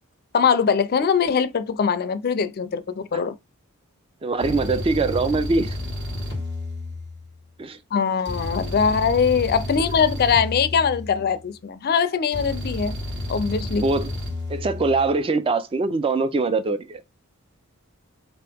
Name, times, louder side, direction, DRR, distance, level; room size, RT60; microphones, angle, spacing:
voice 1, 0.3-3.3 7.9-12.9 13.3-13.9, left 6 dB, 45° left, 0.4 m, -22 dB
voice 2, 4.2-5.8 7.6-7.8 13.7-14.1 14.5-17.0, right 3 dB, 25° right, 0.3 m, -23 dB
sound 1, 4.4-7.5 8.2-11.5 12.3-15.2, left 1 dB, 55° right, 1.5 m, -31 dB
4.0 x 2.9 x 3.4 m
head